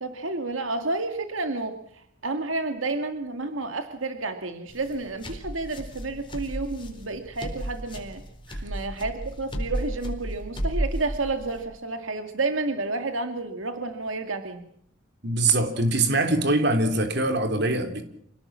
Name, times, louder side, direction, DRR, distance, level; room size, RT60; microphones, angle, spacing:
voice 1, 0.0-8.2 8.6-14.6, right 3 dB, 85° right, 7 dB, 2.1 m, -30 dB
sound 1, 4.7-11.6, right 1 dB, 25° left, 4.2 m, -33 dB
voice 2, 15.2-18.0, right 2 dB, 55° right, 7 dB, 3.4 m, -23 dB
26.5 x 18.0 x 7.4 m, 0.68 s
head